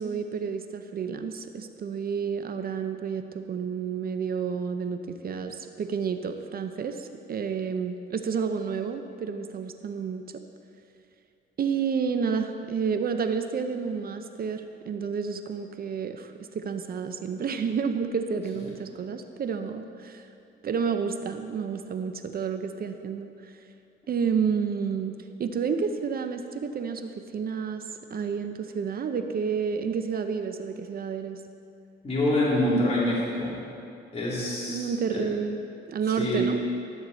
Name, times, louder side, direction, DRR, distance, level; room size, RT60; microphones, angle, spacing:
voice 1, 0.0-10.2 11.6-20.3 20.6-23.6 24.1-27.8 28.1-31.4 34.7-35.6 35.9-36.6, right 6 dB, 50° right, 8 dB, 0.6 m, -30 dB
voice 2, 32.0-33.6 34.1-35.2 36.2-36.5, left 1 dB, 30° left, -7 dB, 3.0 m, -26 dB
13.5 x 8.5 x 4.1 m, 2.5 s
cardioid pair, 90°, 20 cm